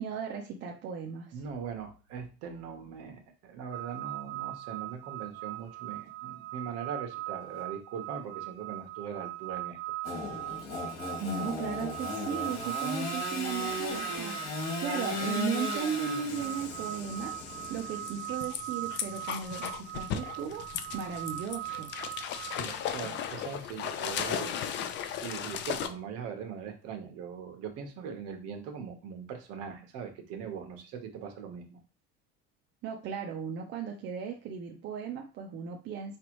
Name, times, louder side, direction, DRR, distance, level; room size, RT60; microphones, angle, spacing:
voice 1, 0.0-1.4 11.2-17.3 17.7-20.6 20.9-21.9 32.8-36.2, right 7 dB, 35° right, 2 dB, 0.6 m, -36 dB
voice 2, 1.3-9.8 10.1-10.2 22.6-24.6 25.2-31.8, right 7 dB, 55° right, 4 dB, 1.2 m, -41 dB
sound 1, 3.7-22.6, right 18 dB, 85° right, 0.5 m, -40 dB
Engine / Sawing, 10.0-18.3, left 3 dB, 60° left, 2.1 m, -36 dB
sound 2, 16.3-25.9, left 9 dB, 40° left, 0.5 m, -37 dB
5.1 x 3.2 x 3.1 m, 0.33 s
cardioid pair, 160°, 30 cm